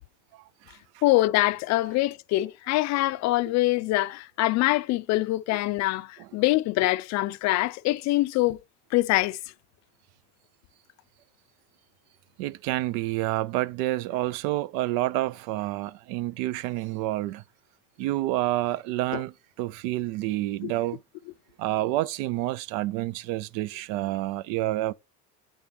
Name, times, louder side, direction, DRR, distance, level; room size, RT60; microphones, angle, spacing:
voice 1, 1.0-8.6 8.9-9.4 19.1-19.2 20.6-20.7, left 18 dB, 55° left, 0.4 m, -24 dB
voice 2, 12.4-17.4 18.0-21.0 21.6-24.9, right 16 dB, 85° right, 0.5 m, -28 dB
8.6 x 3.0 x 5.1 m
cardioid pair, 130°, 32 cm